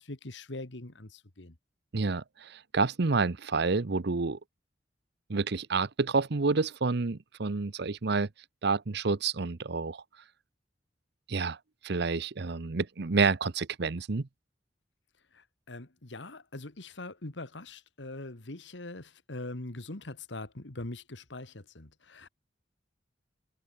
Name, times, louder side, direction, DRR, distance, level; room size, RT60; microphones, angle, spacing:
voice 1, 0.0-1.6 15.3-22.3, left 2 dB, 70° left, 2.0 m, -42 dB
voice 2, 1.9-4.4 5.3-8.3 8.6-10.0 11.3-11.6 11.8-14.3, right 4 dB, 60° right, 0.8 m, -29 dB
head